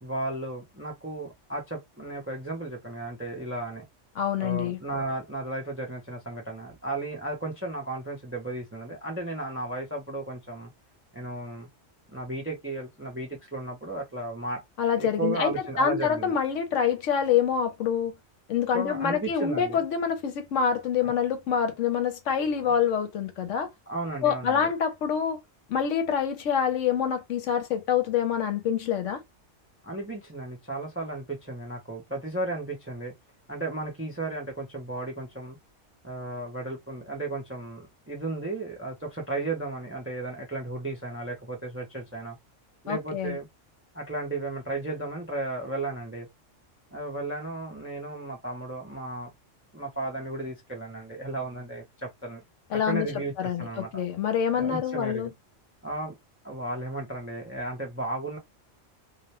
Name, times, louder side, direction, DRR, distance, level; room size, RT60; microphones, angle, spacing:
voice 1, 0.0-3.9 4.4-10.7 11.1-11.7 12.1-14.6 15.0-16.3 18.7-19.8 21.0-21.1 23.9-24.7 29.8-33.1 33.5-35.6 36.0-42.4 42.8-43.5 43.9-46.3 46.9-49.3 49.7-52.4 52.7-54.0 54.5-55.3 55.8-56.1 56.4-58.4, right 2 dB, 15° right, 0.4 m, -34 dB
voice 2, 4.2-4.8 14.8-18.2 18.5-23.7 24.2-25.4 25.7-29.2 42.9-43.4 52.7-53.1 53.4-55.3, left 7 dB, 75° left, 1.0 m, -26 dB
2.4 x 2.1 x 2.8 m
omnidirectional pair, 1.3 m